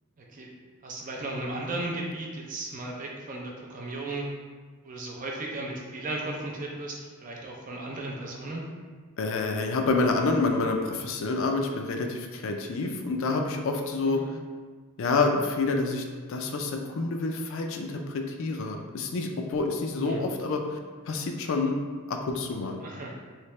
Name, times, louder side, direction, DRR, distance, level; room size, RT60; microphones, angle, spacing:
voice 1, 0.8-4.3 4.8-8.6 14.1-14.3 20.0-20.2 22.8-23.2, right 2 dB, 35° right, -1 dB, 0.5 m, -35 dB
voice 2, 9.2-14.2 15.0-16.0 16.3-20.6 21.1-22.8, left 3 dB, 60° left, 3 dB, 0.4 m, -28 dB
3.3 x 2.7 x 3.1 m, 1.5 s
head